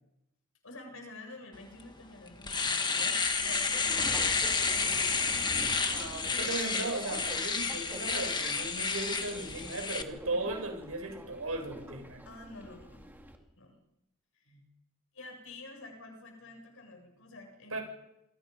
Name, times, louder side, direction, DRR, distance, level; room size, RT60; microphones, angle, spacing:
voice 1, 0.6-5.8 12.2-13.1 13.6-13.8 14.3-14.6 15.1-17.8, left 2 dB, 70° left, 3 dB, 7.6 m, -49 dB
Domestic sounds home sounds, 1.8-1.9 2.3-10.0, left 4 dB, 20° left, 1.7 m, -30 dB
Subway metro underground, 3.3-13.4, equal, 10° right, 2.7 m, -47 dB
voice 2, 5.9-12.2 17.7-17.8, right 2 dB, 80° right, 3 dB, 7.6 m, -37 dB
28.5 x 24.5 x 5.5 m, 0.88 s
head